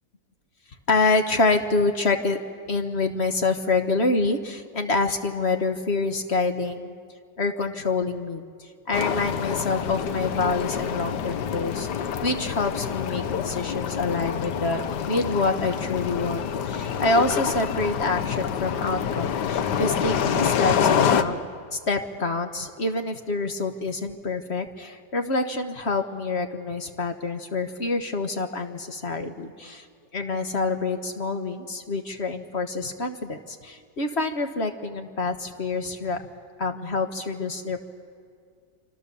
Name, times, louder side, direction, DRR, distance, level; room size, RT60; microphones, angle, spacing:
voice 1, 0.9-2.4 2.7-7.0 7.4-11.9 12.2-21.4 21.7-29.8 30.1-36.2 36.6-37.8, left 3 dB, 45° left, 6 dB, 1.4 m, -27 dB
sound 1, 8.9-21.2, left 8 dB, 85° left, 1.5 m, -27 dB
26.5 x 26.0 x 7.0 m, 2.1 s
omnidirectional pair, 1.7 m